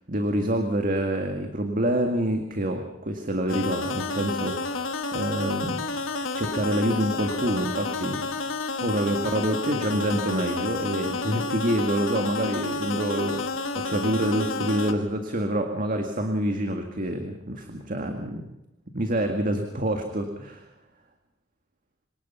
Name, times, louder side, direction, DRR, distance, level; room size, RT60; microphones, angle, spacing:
voice 1, 0.1-4.9 5.1-5.9 6.3-8.3 8.8-18.5 18.9-20.7, right 1 dB, 45° right, 5 dB, 1.9 m, -27 dB
sound 1, 3.5-14.9, left 3 dB, 85° left, 1.8 m, -30 dB
24.5 x 19.0 x 5.7 m, 0.87 s
head